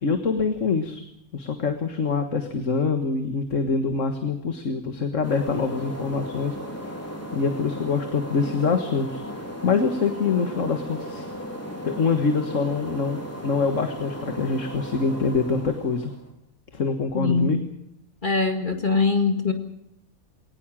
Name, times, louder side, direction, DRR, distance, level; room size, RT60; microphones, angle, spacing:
voice 1, 0.0-1.0 1.3-7.0 7.3-11.3 11.8-16.1 16.7-17.6, left 4 dB, 60° left, 7 dB, 1.9 m, -25 dB
sound 1, 5.2-16.3, equal, 10° left, 3.9 m, -36 dB
voice 2, 17.2-17.6 18.2-19.5, left 4 dB, 35° left, 6 dB, 2.0 m, -22 dB
21.5 x 19.0 x 7.5 m, 0.78 s
omnidirectional pair, 1.5 m